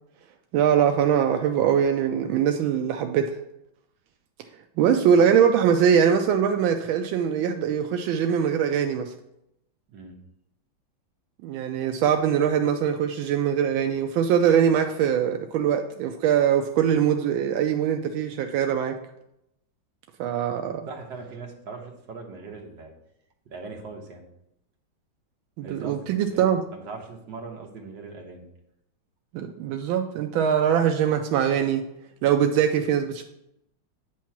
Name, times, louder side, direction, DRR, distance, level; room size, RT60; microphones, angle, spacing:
voice 1, 0.5-3.4 4.8-9.1 11.4-18.9 20.2-20.9 25.6-26.6 29.3-31.8 32.2-33.2, right 8 dB, 85° right, 5 dB, 1.4 m, -22 dB
voice 2, 20.9-22.9 23.5-24.2 25.6-28.5, right 4 dB, 65° right, 1 dB, 1.7 m, -40 dB
9.1 x 3.1 x 5.8 m, 0.81 s
omnidirectional pair, 2.1 m